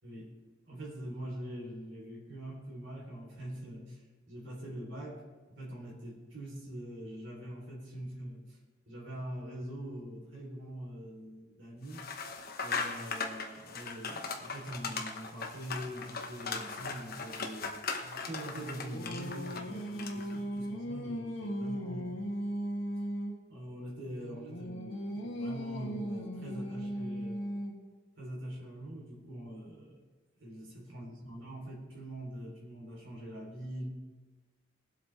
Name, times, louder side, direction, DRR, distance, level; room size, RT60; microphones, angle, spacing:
voice 1, 0.0-0.3 0.7-5.2 5.5-8.6 8.9-12.1 12.6-22.1 23.5-27.5 28.2-30.0 30.4-33.9, right 1 dB, 70° right, -2 dB, 3.3 m, -43 dB
sound 1, 11.9-20.4, left 4 dB, 50° left, 1.1 m, -39 dB
Singing, 18.0-23.4 24.1-27.9, equal, 85° left, 1.4 m, -38 dB
21.0 x 8.0 x 3.3 m, 1.3 s
head